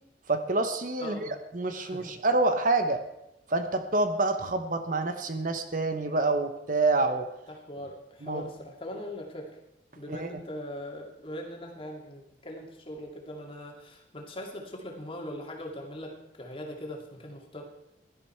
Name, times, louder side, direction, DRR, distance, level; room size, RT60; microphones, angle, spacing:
voice 1, 0.3-3.0 3.5-7.3 8.2-8.5 10.1-10.3, right 2 dB, 45° right, 8 dB, 0.9 m, -27 dB
voice 2, 1.0-1.4 1.7-2.2 7.5-9.5 9.9-17.6, left 1 dB, 30° left, 0 dB, 2.4 m, -41 dB
17.0 x 12.0 x 4.5 m, 0.91 s
head